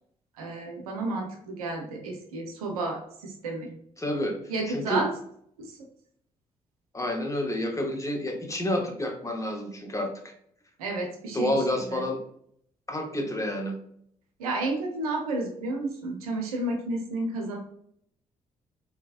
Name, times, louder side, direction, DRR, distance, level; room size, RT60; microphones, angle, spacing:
voice 1, 0.4-3.7 4.5-5.1 5.6-5.9 10.8-11.6 11.9-12.0 14.4-17.6, right 2 dB, 80° right, 2 dB, 0.6 m, -31 dB
voice 2, 4.0-4.4 4.7-5.0 6.9-10.1 11.3-12.2 12.9-13.8, left 1 dB, 15° left, 2 dB, 0.9 m, -29 dB
3.9 x 2.8 x 2.4 m, 0.68 s
figure-of-eight pair, 40°, 19 cm